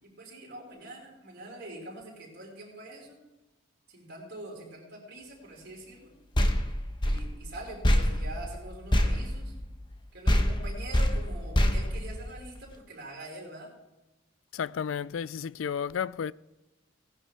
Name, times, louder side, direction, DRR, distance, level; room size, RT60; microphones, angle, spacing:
voice 1, 0.0-3.2 3.9-6.1 7.0-9.5 10.1-13.7, right 1 dB, 55° right, 4.9 m, -44 dB
sound 1, 6.3-10.0 10.3-12.7, equal, 25° left, 1.0 m, -26 dB
voice 2, 14.5-16.3, left 7 dB, 75° left, 0.4 m, -32 dB
17.5 x 11.0 x 3.4 m
head